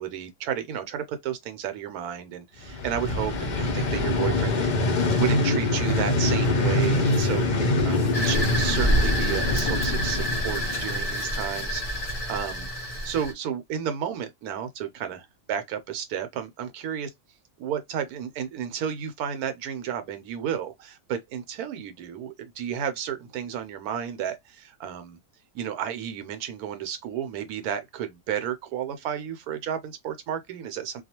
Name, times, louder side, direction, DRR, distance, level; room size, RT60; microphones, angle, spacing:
voice 1, 0.0-4.6 5.1-7.4 7.8-12.7 13.0-17.1 17.6-25.2 25.5-31.0, right 9 dB, 80° right, 1.0 m, -32 dB
Vehicle, 2.6-11.6, left 2 dB, 75° left, 0.4 m, -25 dB
sound 1, 8.1-13.3, equal, 35° left, 0.7 m, -27 dB
2.3 x 2.2 x 2.8 m
omnidirectional pair, 1.6 m